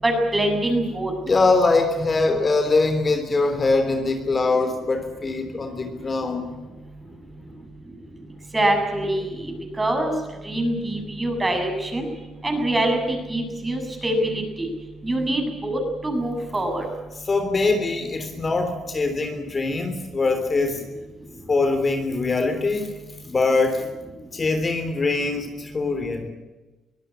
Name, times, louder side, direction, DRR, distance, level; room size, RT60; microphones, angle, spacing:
voice 1, 0.0-1.1 8.5-10.1 10.4-12.1 12.4-14.7 15.0-16.8, right 1 dB, 20° right, 4 dB, 7.5 m, -24 dB
voice 2, 1.2-6.5 17.3-20.8 21.5-22.9 23.2-23.9 24.3-26.3, left 3 dB, 35° left, 7 dB, 3.3 m, -22 dB
23.5 x 16.5 x 9.8 m, 1.2 s
cardioid pair, 90°, 0 cm